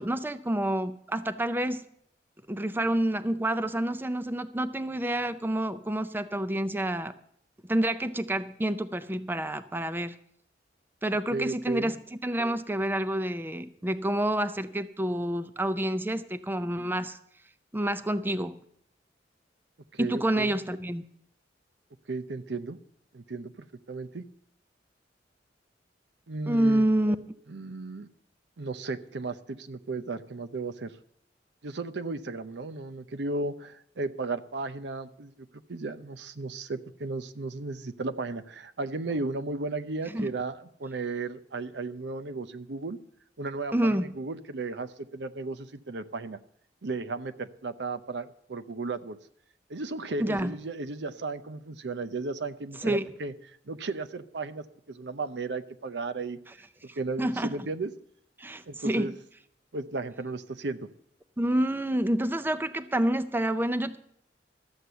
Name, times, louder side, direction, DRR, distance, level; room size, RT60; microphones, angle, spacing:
voice 1, 0.0-1.8 2.5-7.1 7.7-10.1 11.0-12.0 12.2-17.2 17.7-18.6 20.0-21.1 26.5-27.2 40.1-40.3 43.7-44.1 50.2-50.5 52.8-53.1 56.9-57.7 58.4-59.1 61.4-64.0, right 1 dB, 10° right, 11 dB, 0.5 m, -28 dB
voice 2, 11.3-11.9 19.9-20.5 22.1-22.8 23.1-23.5 23.9-24.2 26.3-26.9 27.5-28.1 28.6-30.9 31.6-43.0 43.4-46.4 46.8-49.2 49.7-53.3 53.7-56.4 57.0-57.9 58.7-59.1 59.7-60.9, right 3 dB, 70° right, 9 dB, 0.7 m, -35 dB
13.0 x 8.0 x 6.8 m, 0.69 s
head